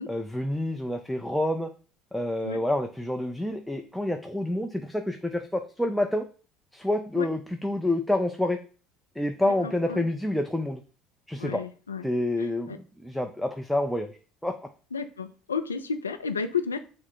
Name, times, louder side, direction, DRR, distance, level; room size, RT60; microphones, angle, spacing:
voice 1, 0.1-1.7 2.1-6.2 6.7-8.6 9.2-10.8 11.3-11.6 12.0-14.6, left 1 dB, ahead, 5 dB, 0.4 m, -28 dB
voice 2, 9.4-10.0 11.4-12.1 12.4-12.8 14.9-16.8, left 5 dB, 90° left, 8 dB, 0.4 m, -32 dB
5.8 x 2.0 x 4.5 m, 0.39 s
hypercardioid pair, 65°, 0 cm